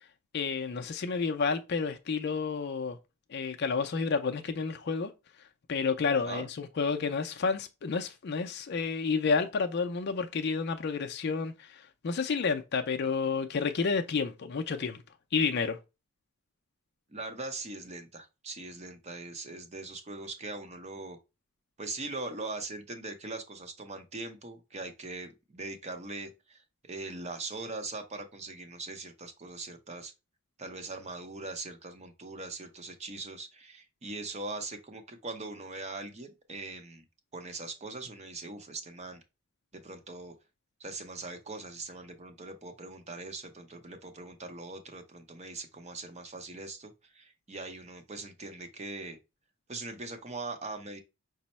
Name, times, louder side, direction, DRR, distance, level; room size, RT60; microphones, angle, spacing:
voice 1, 0.3-3.0 3.3-5.1 5.7-15.0 15.3-15.8, left 5 dB, 50° left, 0.4 m, -30 dB
voice 2, 17.1-21.2 21.8-30.1 30.6-37.0 37.3-39.2 39.7-40.3 40.8-49.2 49.7-51.0, right 3 dB, 30° right, 0.6 m, -41 dB
5.3 x 2.0 x 4.1 m
head